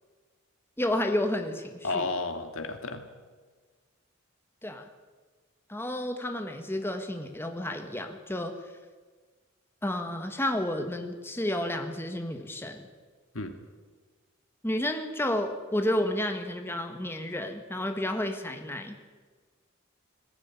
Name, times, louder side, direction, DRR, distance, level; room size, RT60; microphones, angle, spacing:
voice 1, 0.8-2.1 4.6-4.9 5.7-8.5 9.8-12.9 14.6-19.0, left 1 dB, 10° left, 5 dB, 1.6 m, -31 dB
voice 2, 1.8-3.1 13.3-13.5, left 3 dB, 75° left, 7 dB, 2.3 m, -32 dB
20.0 x 15.0 x 9.7 m, 1.4 s
head